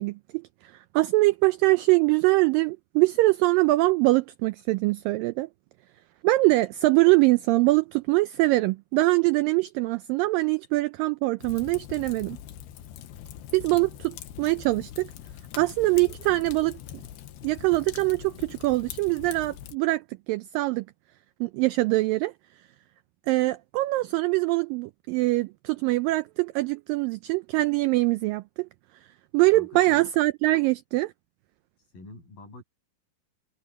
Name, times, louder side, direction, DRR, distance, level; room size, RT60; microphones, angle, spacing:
voice 1, 0.0-5.5 6.2-12.4 13.5-15.1 15.6-16.8 17.4-20.9 21.4-22.3 23.3-28.7 29.3-31.1, right 21 dB, 85° right, 2.0 m, -23 dB
Fire, 11.4-19.8, left 11 dB, 85° left, 3.1 m, -43 dB
voice 2, 29.5-30.1 31.9-32.6, left 2 dB, 60° left, 9.9 m, -46 dB
omnidirectional pair, 4.5 m